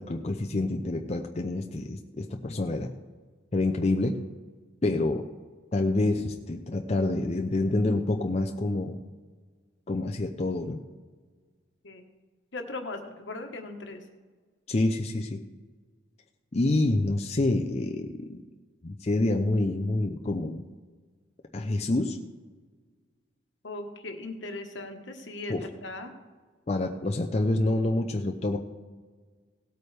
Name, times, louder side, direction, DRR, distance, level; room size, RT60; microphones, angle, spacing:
voice 1, 0.0-2.9 3.5-4.2 4.8-5.3 5.7-9.0 9.9-10.8 14.7-15.4 16.5-18.4 18.8-20.6 21.5-22.2 25.5-25.7 26.7-28.6, left 2 dB, 35° left, 3 dB, 0.5 m, -27 dB
voice 2, 12.5-14.0 23.6-26.1, left 2 dB, 70° left, 5 dB, 1.3 m, -38 dB
17.5 x 8.7 x 3.4 m, 1.5 s
head